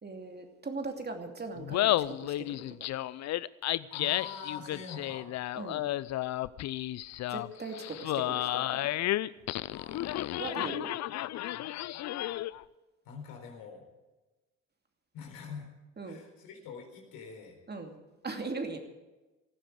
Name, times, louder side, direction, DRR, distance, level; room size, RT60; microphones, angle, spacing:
voice 1, 0.0-2.5 5.5-5.9 7.3-8.8 10.4-10.9 16.0-16.2 17.7-18.0 18.2-18.8, right 3 dB, 25° right, 4 dB, 2.7 m, -39 dB
Laughter, 1.6-12.6, left 15 dB, 45° left, 0.6 m, -32 dB
voice 2, 3.9-5.3 9.7-10.6 13.0-13.9 15.1-15.7 16.0-17.6, left 6 dB, 65° left, 3 dB, 4.1 m, -45 dB
18.0 x 15.0 x 4.9 m, 1.1 s
figure-of-eight pair, 50°, 38 cm